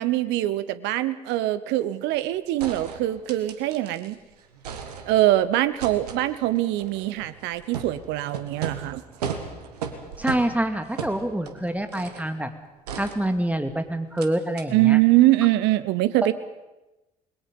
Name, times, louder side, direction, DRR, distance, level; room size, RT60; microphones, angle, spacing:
voice 1, 0.0-4.2 5.1-9.0 14.7-16.3, right 15 dB, 65° right, 15 dB, 1.0 m, -23 dB
sound 1, 2.1-2.2 2.6-4.1 4.4-5.4 5.8-12.3 12.9-13.7 14.2-14.3 14.6-14.7, right 7 dB, 80° right, 1.5 m, -37 dB
voice 2, 10.2-12.5 12.9-15.0, right 1 dB, 5° right, 7 dB, 2.4 m, -26 dB
28.5 x 21.0 x 5.4 m, 1.0 s
figure-of-eight pair, 50°, 20 cm